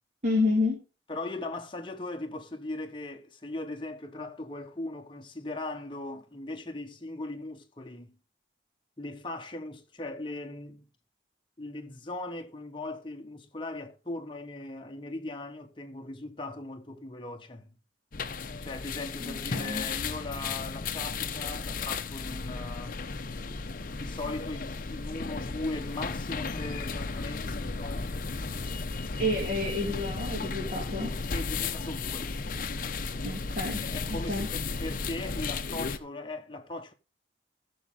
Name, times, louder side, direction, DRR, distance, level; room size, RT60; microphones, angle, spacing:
voice 1, 0.2-0.8 19.2-19.8 29.2-31.1 33.2-33.8 34.3-34.5, left 2 dB, 40° right, 2.9 m, -29 dB
voice 2, 1.1-8.2 9.0-10.9 11.6-17.8 18.6-23.0 23.9-28.2 31.3-32.3 32.9-33.3 33.8-36.9, left 2 dB, 25° left, 1.2 m, -39 dB
sound 1, 18.1-36.0, left 4 dB, 45° left, 0.7 m, -34 dB
14.5 x 6.2 x 3.8 m
head